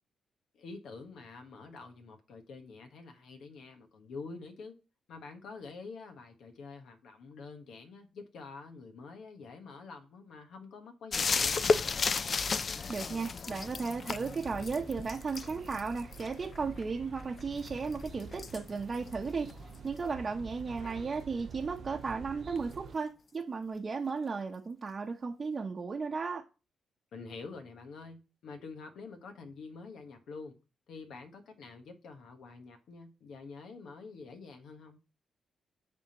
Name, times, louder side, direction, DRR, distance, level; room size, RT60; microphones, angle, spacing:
voice 1, 0.5-4.8 5.1-11.9 20.8-21.1 27.1-30.6 30.9-35.0, left 4 dB, 80° left, 1.2 m, -47 dB
sound 1, 11.1-20.5 22.6-22.7, left 4 dB, 50° left, 0.4 m, -35 dB
voice 2, 12.9-26.4, right 4 dB, 40° right, 0.8 m, -35 dB
sound 2, 13.6-23.0, right 6 dB, 65° right, 0.4 m, -49 dB
9.8 x 3.5 x 2.9 m
cardioid pair, 65°, 0 cm